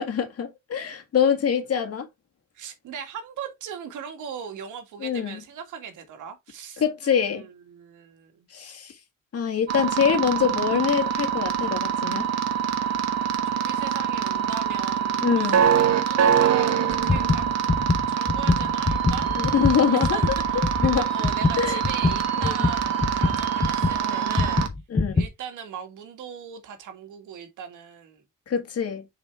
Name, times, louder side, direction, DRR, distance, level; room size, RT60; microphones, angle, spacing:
voice 1, 0.0-2.1 5.0-5.4 6.8-7.4 8.5-8.9 9.3-12.3 15.2-15.7 19.4-20.2 20.5-21.1 21.6-21.8 22.4-22.6 24.9-25.2 28.5-29.1, left 7 dB, 50° left, 2.1 m, -24 dB
voice 2, 2.5-8.5 13.4-15.6 16.0-17.5 18.1-19.4 19.9-24.8 25.1-28.2, right 7 dB, 80° right, 2.1 m, -39 dB
sound 1, 9.7-24.7, right 8 dB, 60° right, 1.4 m, -25 dB
sound 2, 16.9-24.0 24.4-25.3, left 3 dB, 20° left, 0.9 m, -24 dB
6.4 x 4.9 x 3.6 m
cardioid pair, 90°, 30 cm